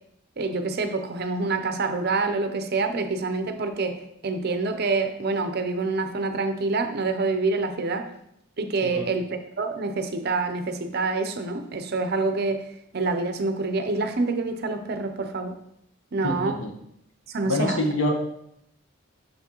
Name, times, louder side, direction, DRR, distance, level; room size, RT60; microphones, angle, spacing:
voice 1, 0.4-8.1 8.6-12.6 12.9-15.5 16.1-16.6 17.3-17.8, right 3 dB, 45° right, 7 dB, 0.5 m, -27 dB
voice 2, 16.2-16.7 17.4-18.1, left 1 dB, 65° left, 3 dB, 1.1 m, -26 dB
6.6 x 5.9 x 2.9 m, 0.74 s
head